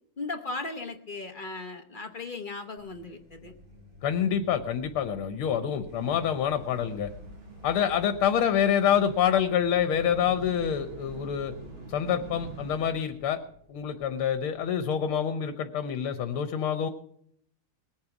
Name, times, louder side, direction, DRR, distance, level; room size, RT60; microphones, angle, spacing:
voice 1, 0.2-3.5, left 3 dB, 40° left, 5 dB, 0.7 m, -37 dB
Truck, 2.8-15.1, left 1 dB, 25° right, 5.4 m, -53 dB
voice 2, 4.0-7.1 7.6-11.5 11.9-13.4 13.7-16.9, left 8 dB, 85° left, 9 dB, 1.8 m, -26 dB
sound 1, 6.2-12.9, right 1 dB, 70° right, 4.0 m, -45 dB
20.5 x 8.8 x 6.0 m, 0.68 s
omnidirectional pair, 2.3 m